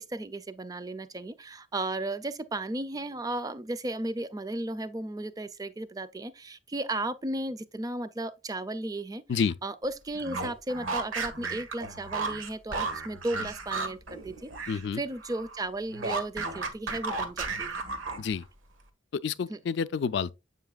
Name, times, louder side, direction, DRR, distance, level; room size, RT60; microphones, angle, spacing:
voice 1, 0.0-9.2 9.6-17.8 19.5-19.6, right 2 dB, 20° right, 0.4 m, -35 dB
sound 1, 10.1-14.9 15.1-18.4, right 3 dB, 80° right, 1.3 m, -34 dB
voice 2, 14.7-15.0 18.2-18.4 19.1-20.3, left 6 dB, 60° left, 0.3 m, -29 dB
7.7 x 5.7 x 2.3 m
head